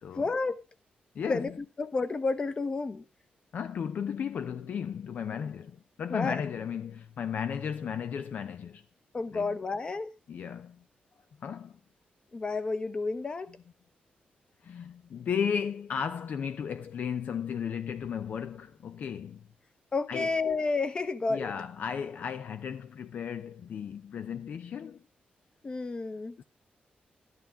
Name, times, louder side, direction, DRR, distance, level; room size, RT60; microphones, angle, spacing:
voice 1, 0.1-0.6 1.3-1.5 1.8-3.1 6.1-6.4 9.1-10.1 12.3-13.6 19.9-21.5 25.6-26.3, left 3 dB, 30° left, 1.0 m, -31 dB
voice 2, 1.1-1.5 3.5-8.8 9.3-9.6 10.3-10.8 11.4-11.8 14.6-19.5 20.1-20.3 21.3-25.0 26.4-26.5, left 7 dB, 60° left, 0.5 m, -35 dB
13.0 x 11.0 x 3.6 m
wide cardioid pair, 165°, 3 cm